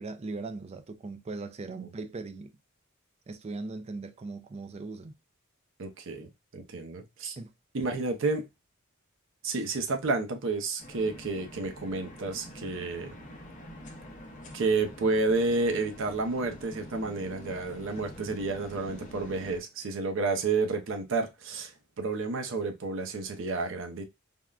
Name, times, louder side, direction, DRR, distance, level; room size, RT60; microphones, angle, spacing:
voice 1, 0.0-2.5 3.3-5.2 7.4-7.5 18.2-18.3, right 3 dB, 30° right, 0.3 m, -39 dB
voice 2, 5.8-7.4 7.7-8.5 9.4-13.1 14.5-21.7 22.0-24.0, right 3 dB, 65° right, 0.6 m, -30 dB
sound 1, 10.8-19.6, equal, 40° left, 0.6 m, -46 dB
3.5 x 2.1 x 2.3 m
head